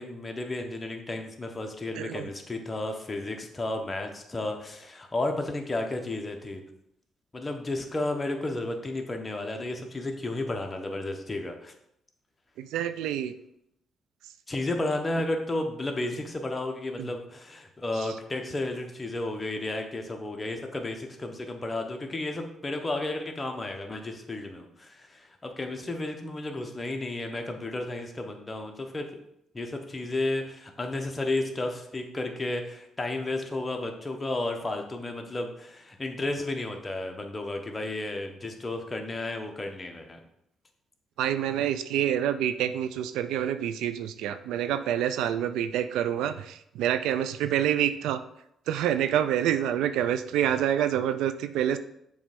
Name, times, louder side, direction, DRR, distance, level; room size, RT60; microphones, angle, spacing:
voice 1, 0.0-6.6 7.3-11.7 14.5-29.2 29.5-40.2, left 2 dB, 20° left, 3 dB, 1.1 m, -33 dB
voice 2, 2.0-2.3 12.6-13.3 17.0-17.1 18.0-18.1 41.2-48.2 48.7-51.8, right 10 dB, 90° right, 11 dB, 0.4 m, -27 dB
7.0 x 3.2 x 5.1 m, 0.76 s
cardioid pair, 90°, 0 cm